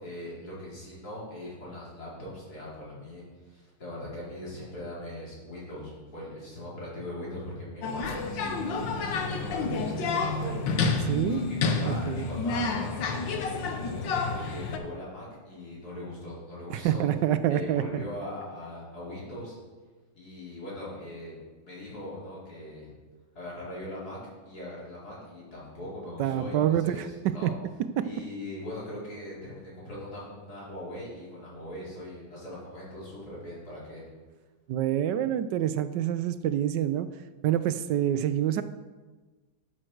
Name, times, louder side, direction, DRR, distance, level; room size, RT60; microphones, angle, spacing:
voice 1, 0.0-10.6 11.2-17.1 17.5-19.6 20.1-21.4 21.6-23.0 23.3-24.2 24.5-27.5 28.0-34.1, left 1 dB, 55° left, -6 dB, 4.3 m, -40 dB
sound 1, 7.8-14.8, left 4 dB, 85° left, 1.7 m, -29 dB
voice 2, 11.0-12.3 16.7-18.0 26.2-27.5 28.0-28.1 34.7-37.1 37.4-38.6, right 11 dB, 80° right, 12 dB, 1.2 m, -27 dB
12.0 x 7.5 x 4.6 m, 1.3 s
omnidirectional pair, 1.9 m